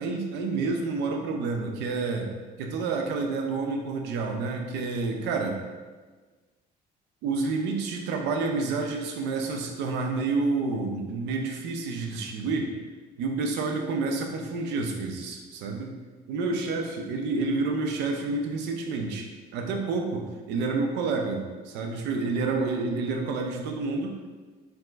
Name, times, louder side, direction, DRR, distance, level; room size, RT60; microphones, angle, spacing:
voice 1, 0.0-2.3 2.6-5.6 7.2-12.7 13.2-16.0 16.3-19.3 19.5-24.3, right 3 dB, 90° right, 2 dB, 0.6 m, -29 dB
4.7 x 3.7 x 2.4 m, 1.4 s
cardioid pair, 110°, 17 cm